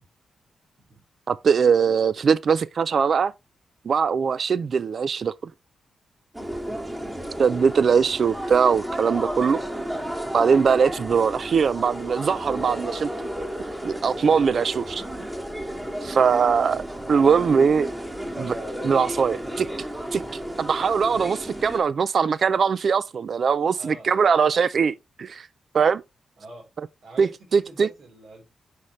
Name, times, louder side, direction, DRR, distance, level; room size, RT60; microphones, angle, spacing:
voice 1, 1.3-3.3 3.9-5.3 7.4-9.6 10.3-13.1 13.8-15.0 16.0-17.9 18.4-18.6 18.8-19.7 20.1-25.5 25.7-26.0 27.2-27.9, right 6 dB, 50° right, 0.3 m, -21 dB
sound 1, 6.3-21.8, equal, 15° right, 1.9 m, -33 dB
voice 2, 6.5-6.8 17.1-17.2 23.8-24.1 26.4-26.7 27.0-28.5, right 2 dB, 70° right, 3.7 m, -45 dB
9.8 x 5.0 x 3.1 m
wide cardioid pair, 130°, 0 cm